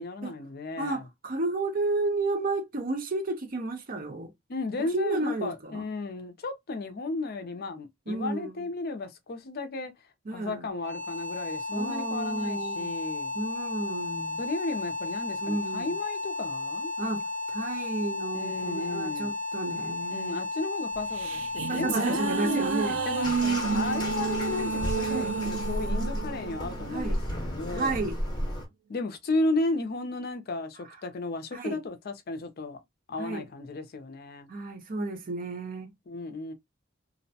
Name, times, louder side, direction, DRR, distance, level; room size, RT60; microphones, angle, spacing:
voice 1, 0.0-1.1 4.5-9.9 10.3-13.3 14.4-16.9 18.3-19.3 20.1-22.6 23.1-28.0 28.9-32.8 33.1-34.5 36.1-36.5, left 2 dB, 50° left, 0.5 m, -34 dB
voice 2, 0.8-4.3 4.8-5.8 8.1-8.7 10.3-10.7 11.7-12.9 13.3-14.4 15.4-16.0 17.0-20.4 21.7-23.0 23.7-23.9 25.0-25.4 26.9-27.2 27.7-28.2 31.5-31.8 33.2-33.5 34.5-35.9, right 2 dB, 45° right, 0.6 m, -32 dB
sound 1, 10.7-27.6, left 2 dB, 70° right, 1.2 m, -34 dB
sound 2, 20.9-27.5, right 7 dB, 90° right, 0.3 m, -31 dB
Bathtub (filling or washing), 23.2-28.6, equal, 20° left, 0.9 m, -33 dB
2.5 x 2.1 x 2.6 m
head